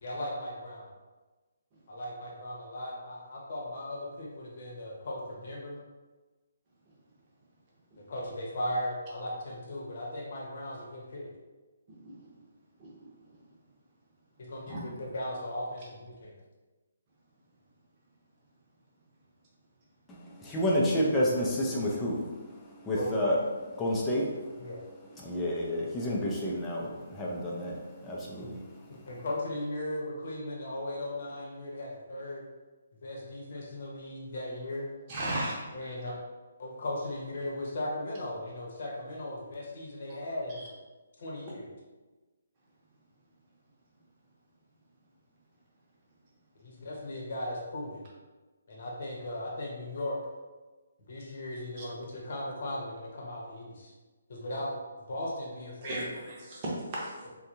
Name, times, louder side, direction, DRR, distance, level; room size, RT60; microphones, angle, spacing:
voice 1, 0.0-0.9 1.9-5.8 8.0-11.3 14.5-16.4 22.9-23.1 24.6-24.8 28.4-28.5 29.1-32.4 33.0-34.9 35.7-36.1 36.6-40.7 41.2-41.7 46.6-48.0 48.7-50.2 51.1-53.9 54.3-54.8 55.1-56.1, left 1 dB, 50° left, -3 dB, 0.8 m, -37 dB
voice 2, 20.1-22.4 22.8-23.4 23.8-24.4 25.2-28.6, equal, 10° left, -4 dB, 0.5 m, -30 dB
voice 3, 35.1-35.6 40.6-40.7 55.8-57.1, right 1 dB, 30° right, -5 dB, 0.9 m, -35 dB
3.3 x 2.2 x 2.8 m, 1.2 s
figure-of-eight pair, 140°, 0 cm